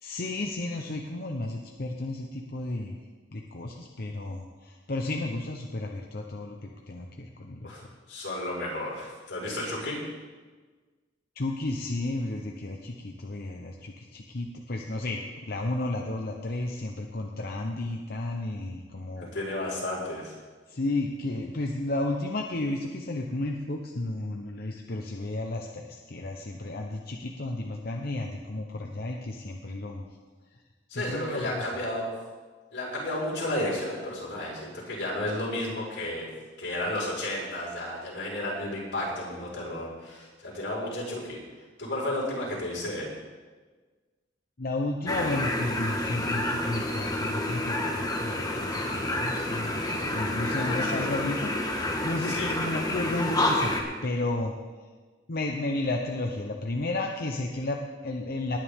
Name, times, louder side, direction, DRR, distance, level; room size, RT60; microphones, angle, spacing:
voice 1, 0.0-3.0 3.3-7.7 11.4-19.3 20.7-30.0 30.5-30.6 30.9-31.7 44.6-54.5 55.3-58.6, left 2 dB, 55° left, 1 dB, 0.9 m, -33 dB
voice 2, 7.6-10.0 19.2-20.3 30.9-32.1 32.7-36.3 36.6-41.4 41.8-43.2 50.5-51.1 52.2-52.5, left 1 dB, 85° left, -5 dB, 5.0 m, -33 dB
sound 1, 45.1-53.8, left 1 dB, 20° left, 1.5 m, -29 dB
19.5 x 10.0 x 3.7 m, 1.4 s
head